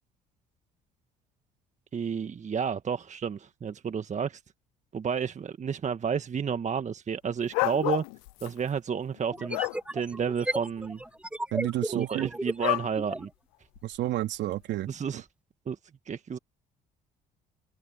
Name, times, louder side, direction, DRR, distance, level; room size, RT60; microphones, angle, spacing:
voice 1, 1.9-4.4 4.9-8.0 8.4-9.6 9.9-11.0 11.9-13.3 14.9-15.3 15.7-15.8 16.1-16.4, right 7 dB, 40° right, 1.5 m, -31 dB
sound 1, 7.5-8.5 9.2-9.8 12.6-12.9 13.8-13.9, left 30 dB, 80° left, 0.5 m, -29 dB
sound 2, 7.9-8.0 9.3-13.3, right 1 dB, 5° right, 1.2 m, -34 dB
voice 2, 11.5-12.3 13.8-15.2, right 14 dB, 65° right, 3.6 m, -31 dB
hypercardioid pair, 55°, 20 cm